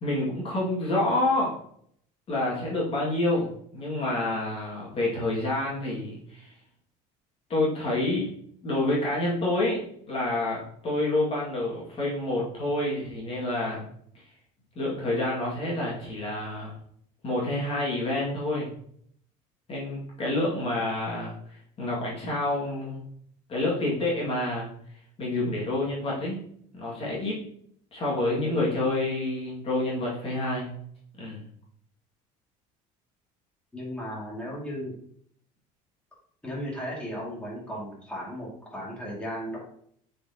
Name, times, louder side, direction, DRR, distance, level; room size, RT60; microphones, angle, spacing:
voice 1, 0.0-1.5 2.3-6.5 7.5-8.3 8.6-13.8 14.8-16.8 17.2-18.7 19.7-23.1 23.5-24.7 25.2-26.5 26.7-27.4 27.9-30.7 31.2-31.4, left 2 dB, 35° left, -5 dB, 2.2 m, -28 dB
voice 2, 33.7-35.0 36.4-39.6, equal, 5° left, -5 dB, 2.3 m, -35 dB
7.3 x 4.4 x 2.9 m, 0.65 s
cardioid pair, 120°, 16 cm